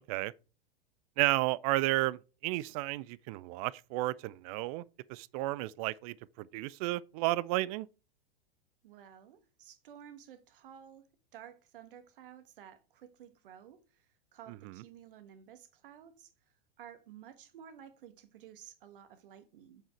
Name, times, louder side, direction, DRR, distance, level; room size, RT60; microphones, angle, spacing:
voice 1, 1.2-4.8 5.1-7.9 14.6-14.7, right 18 dB, 40° right, 0.4 m, -32 dB
voice 2, 8.8-11.0 11.3-14.0 14.3-16.3 16.8-19.8, right 9 dB, 65° right, 1.3 m, -53 dB
7.4 x 4.9 x 4.5 m
hypercardioid pair, 95°, 30 cm